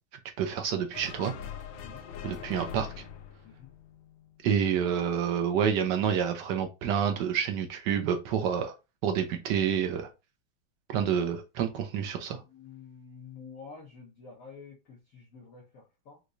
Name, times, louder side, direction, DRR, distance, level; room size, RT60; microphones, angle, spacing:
voice 1, 0.4-1.3 2.2-3.0 4.4-8.7 9.0-10.1 10.9-12.4, right 8 dB, 75° right, 1.0 m, -28 dB
sound 1, 0.9-4.4, left 8 dB, 75° left, 1.3 m, -43 dB
voice 2, 12.4-16.2, left 5 dB, 55° left, 1.1 m, -49 dB
4.6 x 2.2 x 2.5 m
omnidirectional pair, 2.3 m